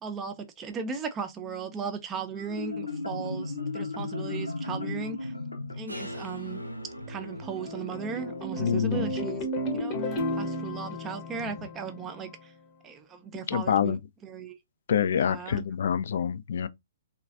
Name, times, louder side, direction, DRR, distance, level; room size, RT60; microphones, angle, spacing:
voice 1, 0.0-5.3 5.7-6.6 7.1-9.5 9.7-12.5 12.8-14.6 15.2-15.6, right 6 dB, 20° right, 0.5 m, -37 dB
Marimba xylophone, 2.4-7.9, left 3 dB, 80° left, 0.7 m, -36 dB
sound 1, 5.9-11.7, equal, 85° right, 0.6 m, -46 dB
sound 2, 6.9-12.3, equal, 30° left, 0.8 m, -33 dB
voice 2, 8.6-9.1 13.5-14.0 14.9-16.7, left 8 dB, 55° left, 0.3 m, -26 dB
3.8 x 2.4 x 2.4 m
figure-of-eight pair, 120°, 0 cm